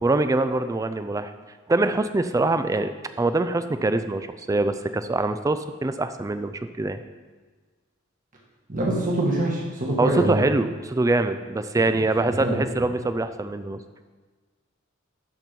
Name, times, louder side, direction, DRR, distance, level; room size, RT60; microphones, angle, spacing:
voice 1, 0.0-1.3 1.7-7.0 10.0-13.8, right 2 dB, 15° right, 10 dB, 0.3 m, -24 dB
voice 2, 8.7-10.4 11.9-12.9, right 1 dB, 45° right, -3 dB, 1.7 m, -25 dB
12.5 x 4.4 x 5.2 m, 1.4 s
head